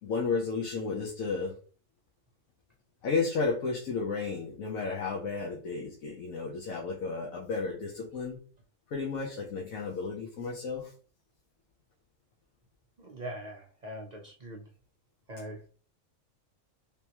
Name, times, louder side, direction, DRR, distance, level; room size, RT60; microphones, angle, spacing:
voice 1, 0.0-1.5 3.0-8.4 8.9-10.9, left 4 dB, 90° left, -2 dB, 1.2 m, -33 dB
voice 2, 13.0-14.7 15.3-15.6, right 1 dB, 55° right, 0 dB, 0.4 m, -42 dB
3.5 x 2.9 x 2.9 m, 0.40 s
omnidirectional pair, 1.4 m